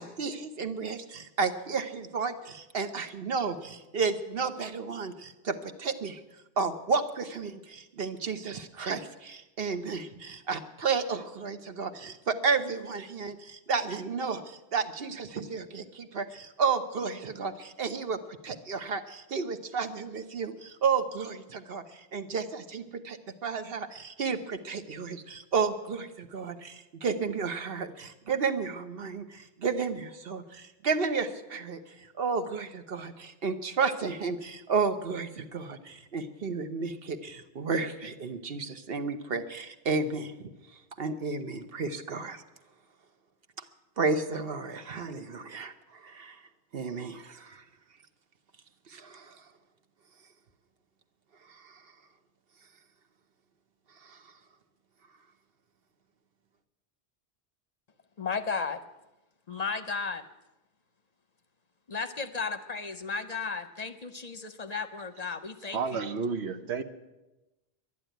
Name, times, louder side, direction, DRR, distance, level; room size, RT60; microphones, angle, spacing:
voice 1, 0.0-6.2 6.6-31.8 32.2-40.5 41.0-42.4 44.0-46.4 46.7-47.6 48.9-49.4 51.5-51.8 54.0-54.2, right 5 dB, 60° right, 9 dB, 1.2 m, -32 dB
voice 2, 58.2-58.8 59.5-60.2 61.9-65.8, left 5 dB, 45° left, 10 dB, 0.7 m, -34 dB
voice 3, 65.7-66.8, right 5 dB, 85° right, 8 dB, 1.2 m, -31 dB
11.5 x 11.0 x 9.1 m, 1.0 s
omnidirectional pair, 1.1 m